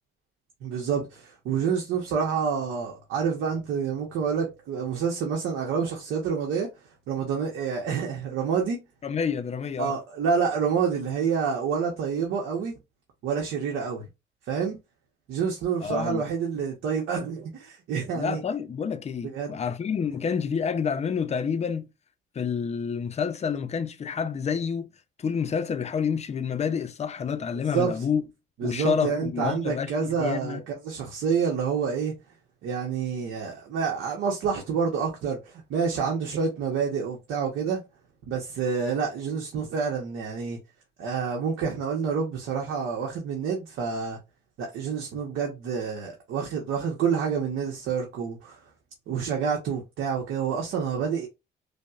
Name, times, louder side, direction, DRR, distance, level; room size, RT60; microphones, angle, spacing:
voice 1, 0.6-6.7 7.1-8.8 9.8-12.7 13.2-14.1 14.5-14.8 15.3-18.4 19.2-19.6 27.7-28.0 28.6-32.1 32.6-37.8 38.3-40.6 41.0-44.2 44.6-48.6 49.1-51.3, right 6 dB, 80° right, 0.9 m, -28 dB
voice 2, 9.0-10.0 15.8-16.2 18.1-21.9 22.4-24.9 25.2-28.2 28.6-30.6, left 6 dB, 35° left, 0.5 m, -28 dB
5.1 x 2.1 x 2.4 m
cardioid pair, 90°, 20 cm